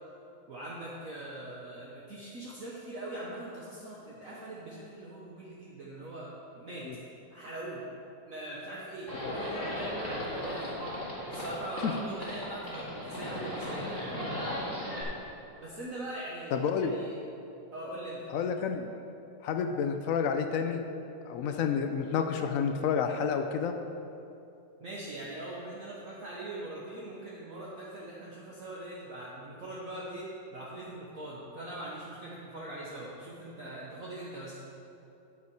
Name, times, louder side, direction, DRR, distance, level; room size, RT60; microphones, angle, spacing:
voice 1, 0.5-6.9 7.3-7.8 8.2-10.8 11.3-14.9 15.6-17.1 17.7-18.3 24.8-34.5, right 1 dB, 50° right, -6 dB, 1.4 m, -42 dB
Livestock farm animals working animals, 9.1-15.0, left 1 dB, 10° left, 2.1 m, -36 dB
voice 2, 16.5-17.0 18.3-18.9 19.4-20.8 21.2-23.7, left 6 dB, 85° left, 6 dB, 0.7 m, -29 dB
10.0 x 7.3 x 4.7 m, 2.8 s
omnidirectional pair, 2.0 m